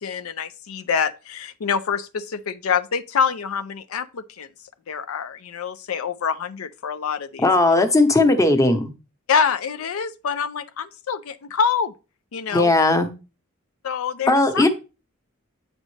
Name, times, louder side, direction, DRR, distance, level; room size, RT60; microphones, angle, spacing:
voice 1, 0.0-4.5 4.9-7.5 9.3-11.9 12.3-12.7 13.8-14.7, left 6 dB, 85° left, 0.5 m, -26 dB
voice 2, 7.4-8.9 12.5-13.1 14.3-14.7, left 2 dB, 15° left, 0.8 m, -17 dB
8.6 x 5.2 x 3.2 m
head